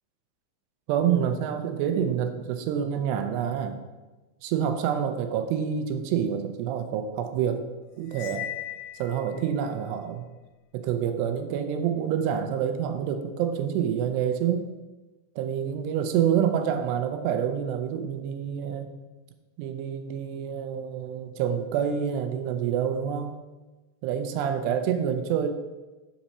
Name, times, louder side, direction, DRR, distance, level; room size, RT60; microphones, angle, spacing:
voice 1, 0.9-3.8 4.4-7.6 8.0-8.5 9.0-10.3 10.7-14.7 15.4-18.9 19.6-23.3 24.0-25.5, right 8 dB, 80° right, 8 dB, 2.7 m, -27 dB
Cymbal, 8.1-9.5, left 13 dB, 85° left, 2.5 m, -37 dB
7.6 x 5.8 x 5.4 m, 1.2 s
omnidirectional pair, 5.1 m